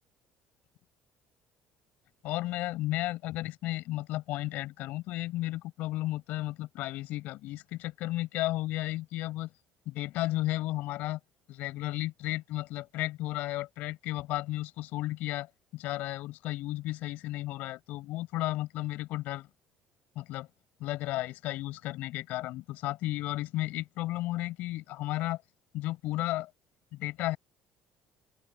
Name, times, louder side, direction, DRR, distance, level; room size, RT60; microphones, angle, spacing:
voice 1, 2.2-9.5 9.8-11.2 11.5-19.5 20.1-20.5 20.8-25.4 25.7-26.5 26.9-27.4, left 17 dB, 75° left, 6.4 m, -33 dB
open air
cardioid pair, 110°, 3 cm